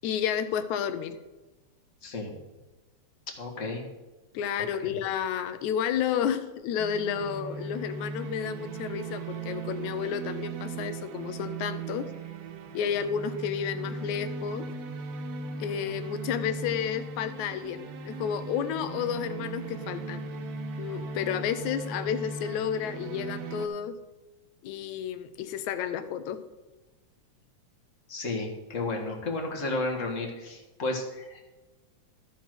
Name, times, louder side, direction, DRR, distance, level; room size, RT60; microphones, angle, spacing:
voice 1, 0.0-1.2 4.3-12.1 12.7-14.7 15.6-20.3 20.8-24.0 24.6-26.4, left 8 dB, 75° left, 11 dB, 2.0 m, -31 dB
voice 2, 2.0-2.3 3.4-3.8 4.8-4.9 28.1-31.5, left 2 dB, 40° left, 1 dB, 1.1 m, -33 dB
sound 1, 6.8-23.7, right 4 dB, 65° right, 1.9 m, -38 dB
13.5 x 5.6 x 6.0 m, 1.2 s
omnidirectional pair, 3.5 m